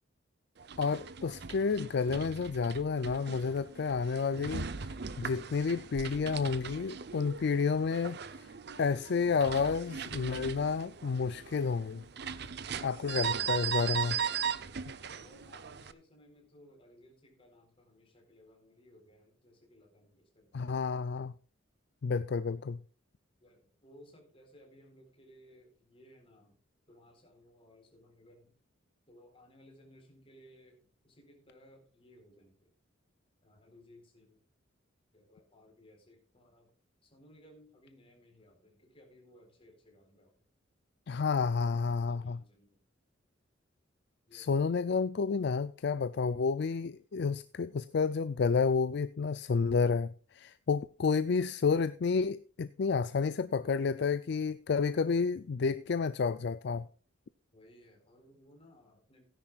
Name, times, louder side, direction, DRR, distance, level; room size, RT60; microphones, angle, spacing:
sound 1, 0.6-15.9, right 7 dB, 55° right, 0.7 m, -39 dB
voice 1, 0.8-4.7 5.2-8.5 8.8-12.0 12.8-14.2 20.5-21.3 22.0-22.8 41.1-42.4 44.3-56.9, left 5 dB, 55° left, 0.4 m, -30 dB
voice 2, 14.9-20.7 23.4-26.6 26.9-28.5 29.1-32.7 33.4-34.4 35.1-36.7 37.0-40.3 41.6-42.8 44.3-44.8 45.4-45.6 57.5-59.2, equal, 30° left, 4.1 m, -60 dB
17.0 x 10.0 x 2.4 m
head